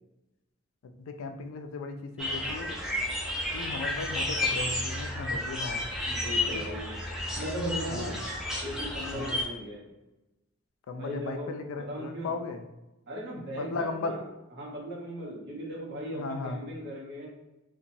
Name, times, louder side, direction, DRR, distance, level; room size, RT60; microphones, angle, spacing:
voice 1, 1.0-2.8 3.5-5.8 6.5-6.7 7.9-8.2 9.1-9.3 10.9-12.6 13.6-14.2 16.1-16.6, left 3 dB, 85° left, 6 dB, 0.3 m, -36 dB
sound 1, 2.2-9.4, left 1 dB, 5° right, 0.4 m, -32 dB
voice 2, 6.1-6.9 7.4-8.2 8.6-9.9 11.0-12.3 13.1-14.3 14.6-17.3, equal, 55° right, -3 dB, 0.8 m, -37 dB
2.8 x 2.3 x 2.6 m, 0.98 s
head